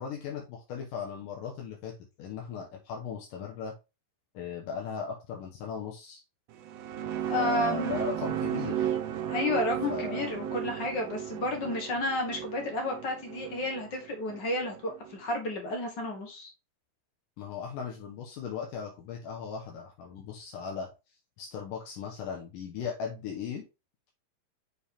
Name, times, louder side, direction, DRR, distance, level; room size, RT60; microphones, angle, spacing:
voice 1, 0.0-3.7 4.3-6.2 7.3-9.0 9.9-10.3 17.4-20.9 21.4-23.6, left 6 dB, 75° left, 2.6 m, -38 dB
sound 1, 6.5-15.2, right 10 dB, 80° right, 1.5 m, -35 dB
voice 2, 7.3-8.0 9.3-16.5, left 2 dB, 50° left, 1.4 m, -31 dB
6.9 x 4.7 x 3.4 m
omnidirectional pair, 4.0 m